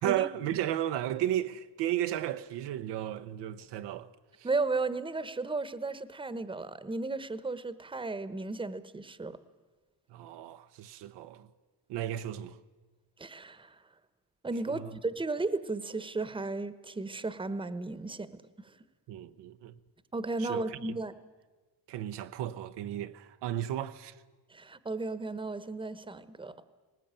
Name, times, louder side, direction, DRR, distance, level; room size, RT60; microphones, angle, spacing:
voice 1, 0.0-4.1 10.1-11.5 11.9-12.6 14.7-14.9 19.1-19.7 20.4-20.6 21.9-24.1, right 12 dB, 80° right, 0.9 m, -34 dB
voice 2, 4.4-9.4 13.2-13.8 14.4-18.4 20.1-21.1 24.5-26.5, right 3 dB, 10° right, 1.1 m, -34 dB
19.0 x 19.0 x 8.9 m
cardioid pair, 100°, 41 cm